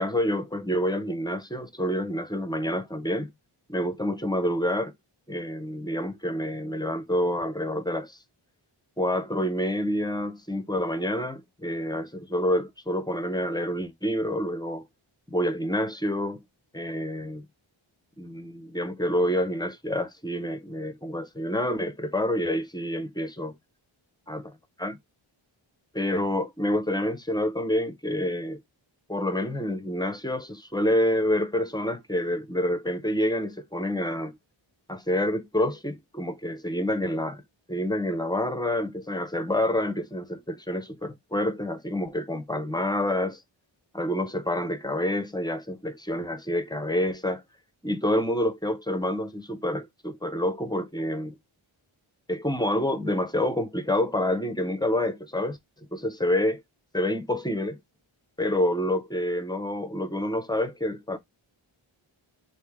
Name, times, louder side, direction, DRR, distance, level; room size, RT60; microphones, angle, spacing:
voice 1, 0.0-3.3 3.7-4.9 5.3-8.2 9.0-14.9 15.3-16.4 16.7-17.5 18.2-23.6 24.3-25.0 25.9-28.6 29.1-34.4 34.9-37.4 37.7-43.4 43.9-47.4 47.8-51.4 52.3-55.6 55.9-56.6 56.9-57.8 58.4-61.2, left 1 dB, 10° left, 0.6 m, -28 dB
3.2 x 2.6 x 3.5 m
wide cardioid pair, 80°, 50 cm